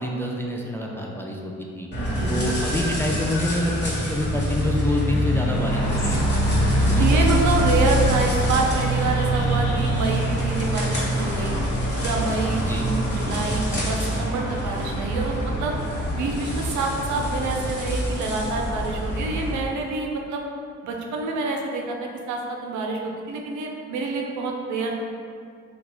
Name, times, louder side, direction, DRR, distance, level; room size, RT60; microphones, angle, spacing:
voice 1, 0.0-1.9 2.3-6.3 6.8-8.0 12.6-12.8, left 1 dB, 10° left, -1 dB, 0.4 m, -28 dB
sound 1, 1.9-19.6, equal, 35° left, 1.4 m, -24 dB
voice 2, 2.0-2.4 7.0-11.6 12.0-15.7 16.1-20.5 20.8-25.0, right 3 dB, 65° right, 1 dB, 0.6 m, -27 dB
sound 2, 5.7-11.6, left 1 dB, 50° left, 0.8 m, -34 dB
sound 3, 6.0-17.8, left 2 dB, 80° left, 0.8 m, -47 dB
2.9 x 2.4 x 3.7 m, 2.2 s
supercardioid pair, 55°, 32 cm